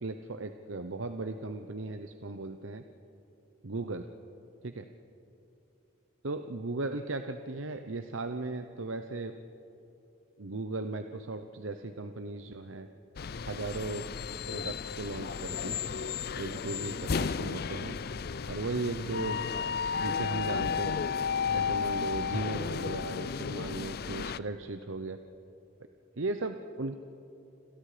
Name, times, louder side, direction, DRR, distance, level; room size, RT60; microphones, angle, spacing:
voice 1, 0.0-2.8 3.6-4.1 4.6-4.9 6.2-9.4 10.4-12.9 13.5-14.1 14.5-15.8 16.4-18.0 18.5-21.0 21.5-25.2 26.2-27.0, right 3 dB, 80° right, 8 dB, 0.9 m, -37 dB
sound 1, 13.2-24.4, left 6 dB, 50° left, 0.5 m, -33 dB
29.5 x 27.5 x 5.1 m, 2.9 s
head